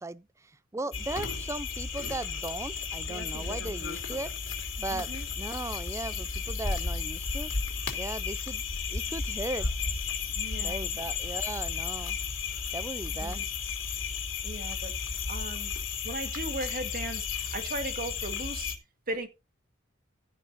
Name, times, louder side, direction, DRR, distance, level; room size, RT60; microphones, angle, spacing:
voice 1, 0.0-4.3 4.8-5.1 5.4-7.5 8.0-8.6 8.9-9.7 10.6-12.2 12.7-13.4, right 2 dB, 15° right, 0.4 m, -37 dB
sound 1, 0.9-18.8, left 5 dB, 85° left, 2.9 m, -33 dB
voice 2, 4.9-5.3 10.4-10.9 13.2-13.4 14.4-15.0 15.3-15.7 16.0-18.7 19.1-19.3, right 2 dB, 45° right, 1.9 m, -37 dB
15.0 x 5.2 x 4.1 m
head